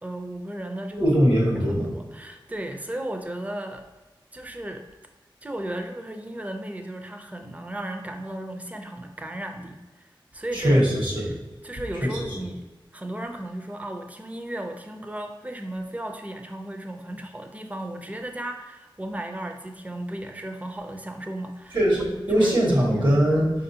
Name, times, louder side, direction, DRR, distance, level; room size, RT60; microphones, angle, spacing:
voice 1, 0.0-1.1 1.6-3.8 4.3-4.8 5.4-10.1 10.3-10.8 11.3-11.4 11.6-12.7 12.9-21.8 22.1-23.1, right 1 dB, 15° right, 4 dB, 0.4 m, -35 dB
voice 2, 1.0-1.9 10.5-11.3 12.0-12.3 21.7-23.5, equal, 60° right, -3 dB, 1.2 m, -21 dB
4.7 x 2.6 x 2.8 m, 1.2 s
wide cardioid pair, 50°, 9 cm